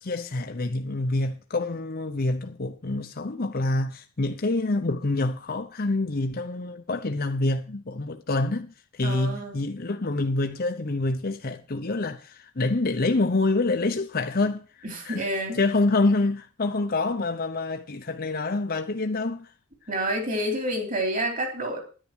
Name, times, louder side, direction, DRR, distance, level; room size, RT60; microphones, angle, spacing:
voice 1, 0.0-14.6 15.0-15.2 15.5-19.5, left 2 dB, 45° left, 0.8 m, -26 dB
voice 2, 9.0-9.6 14.9-15.6 19.9-21.8, right 1 dB, 40° right, 3.6 m, -28 dB
10.0 x 10.0 x 6.3 m
head